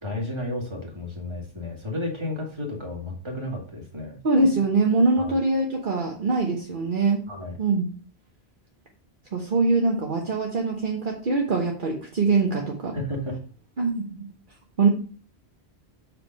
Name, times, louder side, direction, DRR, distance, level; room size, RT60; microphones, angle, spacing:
voice 1, 0.0-4.2 5.2-5.3 7.3-7.5 12.9-13.4, left 1 dB, 25° right, 0 dB, 2.1 m, -32 dB
voice 2, 4.2-7.2 7.6-7.8 9.3-12.9 13.8-14.1 14.8-14.9, right 3 dB, 55° right, 0 dB, 1.2 m, -23 dB
7.3 x 4.6 x 5.2 m, 0.40 s
omnidirectional pair, 1.1 m